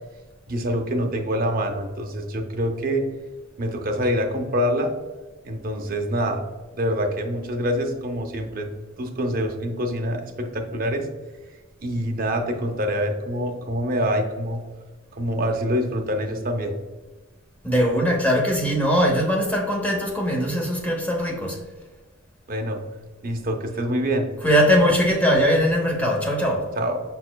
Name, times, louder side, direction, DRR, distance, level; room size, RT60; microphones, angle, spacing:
voice 1, 0.5-3.0 3.6-4.9 5.4-6.4 6.8-8.7 9.0-11.1 11.8-14.6 15.1-16.7 22.5-22.8 23.2-24.3 26.8-27.0, equal, 40° right, 4 dB, 0.6 m, -25 dB
voice 2, 17.6-21.6 24.4-26.7, equal, 5° left, -1 dB, 0.8 m, -21 dB
5.5 x 4.2 x 2.2 m, 1.3 s
head